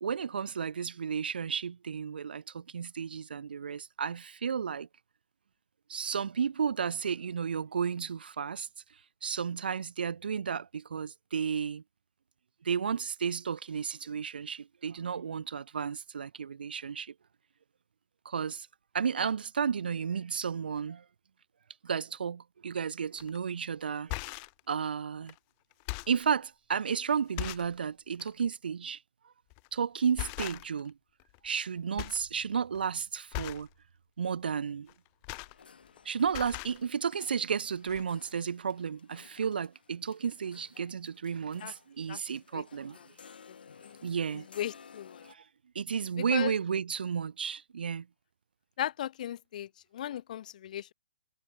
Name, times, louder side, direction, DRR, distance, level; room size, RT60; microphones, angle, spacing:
voice 1, 0.0-4.9 5.9-8.7 9.2-11.8 12.6-17.1 18.3-18.7 18.9-21.0 21.8-24.1 24.7-25.3 26.1-29.0 29.7-30.9 31.4-33.7 34.2-34.9 36.1-43.0 44.0-44.5 45.3-45.4 45.8-48.1, right 6 dB, 70° right, 0.5 m, -33 dB
sound 1, 23.2-23.4 23.9-24.6 25.3-25.4 25.7-26.3 26.9-27.0 27.4-27.8 28.1-28.3 29.5-29.7 30.2-30.9 31.2-31.7 32.0-32.3 32.6-32.9 33.3-33.7 34.9-36.0 36.2-36.8 37.6-37.7 37.9-38.0, left 40 dB or more, 30° left, 1.6 m, -39 dB
sound 2, 35.4-45.3, left 6 dB, 70° left, 4.4 m, -56 dB
voice 2, 44.6-45.2 46.3-46.5 48.8-50.9, left 11 dB, 50° left, 0.3 m, -36 dB
figure-of-eight pair, 130°, 5 cm